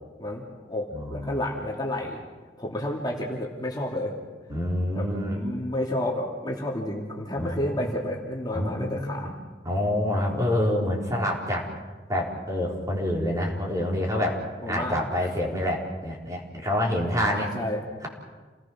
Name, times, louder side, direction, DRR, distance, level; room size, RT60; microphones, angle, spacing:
voice 1, 0.2-2.2 2.6-4.1 4.9-9.3 14.6-15.3 17.2-17.8, left 1 dB, 25° left, -1 dB, 2.7 m, -31 dB
voice 2, 0.9-1.4 4.5-5.4 7.4-7.9 8.5-9.3 9.6-11.7 12.1-14.4 14.7-17.5, left 1 dB, 20° right, -1 dB, 3.9 m, -27 dB
29.0 x 19.0 x 6.2 m, 1.3 s
head